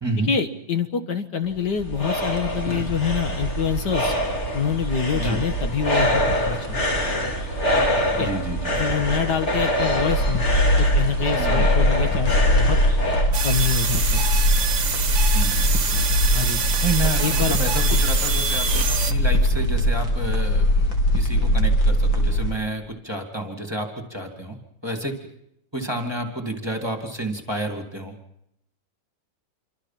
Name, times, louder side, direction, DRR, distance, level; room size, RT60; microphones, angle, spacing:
voice 1, 0.2-4.1 4.5-6.8 8.1-8.3 8.7-10.5 10.8-12.8 13.4-14.2 16.3-16.6 17.2-17.6 17.9-18.0, left 7 dB, 65° left, 7 dB, 1.9 m, -26 dB
sound 1, 1.4-13.3, equal, 35° left, 3.5 m, -25 dB
voice 2, 8.2-8.7 11.3-11.7 15.3-15.7 16.8-24.6 24.8-25.1 25.7-28.1, right 1 dB, 15° right, 3 dB, 2.5 m, -30 dB
sound 2, 10.0-22.5, left 1 dB, 80° left, 3.8 m, -21 dB
sound 3, 13.3-19.1, right 6 dB, 40° right, 1.5 m, -25 dB
27.5 x 24.0 x 5.9 m, 0.79 s
omnidirectional pair, 2.1 m